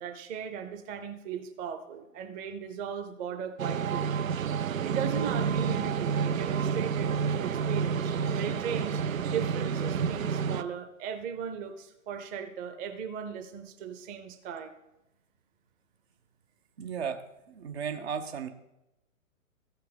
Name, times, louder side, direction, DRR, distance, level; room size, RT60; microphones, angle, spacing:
voice 1, 0.0-4.1 4.8-9.0 9.3-14.7, right 7 dB, 20° right, 7 dB, 0.8 m, -37 dB
sound 1, 3.6-10.6, right 7 dB, 75° right, 0.6 m, -29 dB
voice 2, 16.8-18.5, right 7 dB, 50° right, 7 dB, 1.0 m, -35 dB
14.0 x 5.8 x 5.4 m, 0.90 s
figure-of-eight pair, 120°, 41 cm